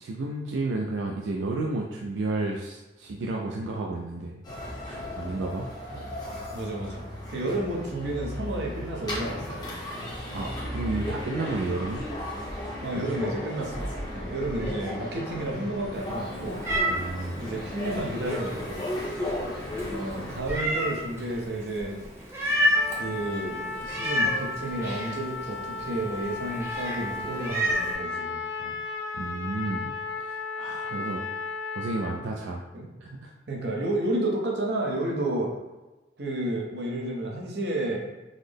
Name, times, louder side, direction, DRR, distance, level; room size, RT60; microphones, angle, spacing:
voice 1, 0.0-4.4 4.8-5.7 10.3-12.1 16.9-17.4 29.1-31.2 31.7-32.6 33.0-33.3, right 2 dB, 85° right, -1 dB, 0.3 m, -32 dB
sound 1, 4.4-20.4, left 1 dB, 25° left, 0.7 m, -35 dB
voice 2, 6.5-9.8 12.8-16.6 17.4-18.8 19.7-21.9 22.9-28.7 32.7-32.9 33.5-35.5 36.2-38.1, right 1 dB, 65° right, -1 dB, 0.7 m, -31 dB
Meow, 15.9-28.0, equal, 15° right, 0.5 m, -31 dB
Trumpet, 22.7-32.2, left 4 dB, 85° left, 0.4 m, -35 dB
3.9 x 2.0 x 3.3 m, 1.1 s
head